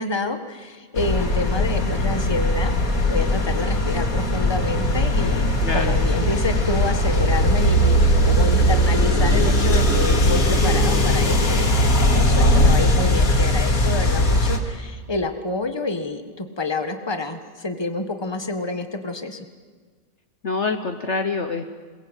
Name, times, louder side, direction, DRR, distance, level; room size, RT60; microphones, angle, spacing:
voice 1, 0.0-2.7 3.1-11.8 12.1-19.4, left 2 dB, 15° left, 7 dB, 1.6 m, -28 dB
sound 1, 0.9-14.6, left 1 dB, 65° left, 2.7 m, -19 dB
voice 2, 5.6-6.0 20.4-21.6, left 4 dB, 50° left, 7 dB, 1.3 m, -25 dB
27.0 x 21.5 x 8.2 m, 1.5 s
omnidirectional pair, 1.6 m